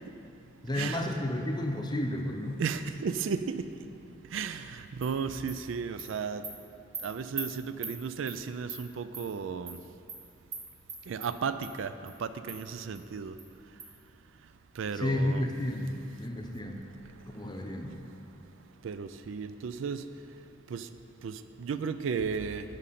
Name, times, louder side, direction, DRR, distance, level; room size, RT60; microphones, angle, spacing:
voice 1, 0.6-2.6 14.9-16.9 17.3-18.0, left 1 dB, 20° left, 3 dB, 0.7 m, -32 dB
voice 2, 2.6-3.6 4.3-4.6 5.0-6.4 7.0-9.8 11.1-11.9 12.2-13.3 14.8-15.4 18.8-20.0 20.7-20.8 21.2-21.3 21.6-22.6, right 6 dB, 85° right, 11 dB, 0.4 m, -34 dB
Animal, 5.0-5.1 5.5-5.6 6.0-6.1 6.4-6.5 6.9-7.0 7.4-7.5 7.8-7.9 8.3-8.4 8.7-8.8 9.1-9.2 9.7-9.8 10.1-10.2 10.5-10.6 10.9-11.3 11.6-11.7 12.1-12.2 12.5-12.6 12.9-13.0 13.4-13.5 13.8-13.9, right 4 dB, 50° right, 1.5 m, -39 dB
9.9 x 5.3 x 5.8 m, 2.7 s
head